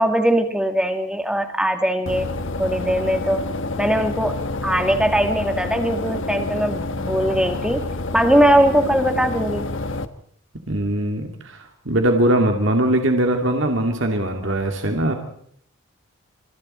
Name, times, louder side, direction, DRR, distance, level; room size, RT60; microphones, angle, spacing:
voice 1, 0.0-2.3 2.6-3.4 3.8-7.8 8.1-9.7, right 1 dB, 5° right, 5 dB, 2.1 m, -20 dB
sound 1, 2.1-10.1, left 2 dB, 65° left, 1.3 m, -28 dB
voice 2, 10.7-15.1, right 1 dB, 60° right, 3 dB, 2.4 m, -21 dB
26.5 x 26.0 x 4.3 m, 0.64 s
head